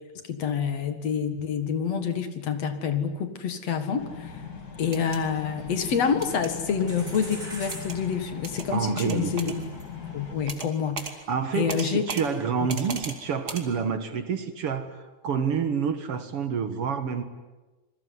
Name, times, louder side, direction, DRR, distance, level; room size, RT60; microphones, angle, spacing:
voice 1, 0.3-4.4 4.8-9.5 9.9-11.2 11.5-12.0, left 6 dB, 60° left, 8 dB, 2.8 m, -27 dB
sound 1, 4.0-10.3, left 6 dB, 85° left, 5.3 m, -39 dB
sound 2, 4.8-5.2 6.2-6.5 7.7-8.0 8.4-8.7 9.0-9.6 10.5-10.7 11.0-11.1 11.7-12.2 12.7-13.2 13.5-13.6, right 4 dB, 35° right, 2.7 m, -36 dB
sound 3, 5.5-6.6 6.9-11.6 11.9-13.0, right 1 dB, 15° right, 7.1 m, -45 dB
voice 2, 8.7-9.6 11.3-15.0 15.2-17.2, right 6 dB, 55° right, 9 dB, 2.2 m, -28 dB
27.5 x 21.5 x 9.7 m, 1.2 s
omnidirectional pair, 3.4 m